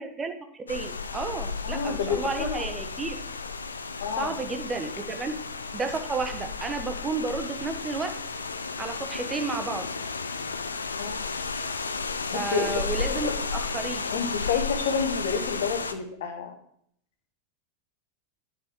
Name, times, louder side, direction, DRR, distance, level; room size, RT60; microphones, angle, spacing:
voice 1, 0.0-3.1 4.2-5.3 5.7-8.1 8.8-9.8 12.3-14.1, right 4 dB, 15° right, 6 dB, 1.2 m, -32 dB
sound 1, 0.7-15.9, left 4 dB, 75° left, 0.6 m, -33 dB
voice 2, 1.6-2.6 4.0-4.4 11.0-11.2 12.3-12.8 13.1-13.3 14.1-16.5, left 6 dB, 55° left, 7 dB, 1.5 m, -29 dB
10.0 x 5.8 x 4.6 m, 0.68 s
figure-of-eight pair, 90°, 0 cm